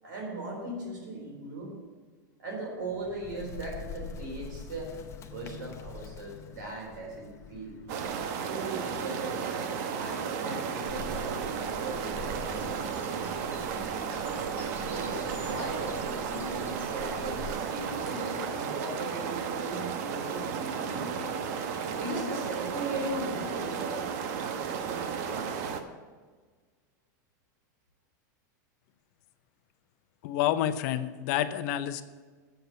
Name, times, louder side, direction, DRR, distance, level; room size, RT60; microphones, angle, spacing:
voice 1, 0.0-1.7 2.4-4.9 5.3-7.8 8.4-13.1 14.8-21.4 21.9-24.0 24.4-25.5, right 2 dB, 80° right, 0 dB, 3.9 m, -38 dB
Bird, 2.8-8.5, left 7 dB, 30° left, 0.8 m, -45 dB
sound 1, 7.9-25.8, right 6 dB, 60° right, 1.0 m, -34 dB
sound 2, 10.8-17.6, equal, 20° right, 2.5 m, -44 dB
voice 2, 30.2-32.0, left 11 dB, 60° left, 11 dB, 0.6 m, -28 dB
7.9 x 6.7 x 8.2 m, 1.4 s
supercardioid pair, 130°, 10 cm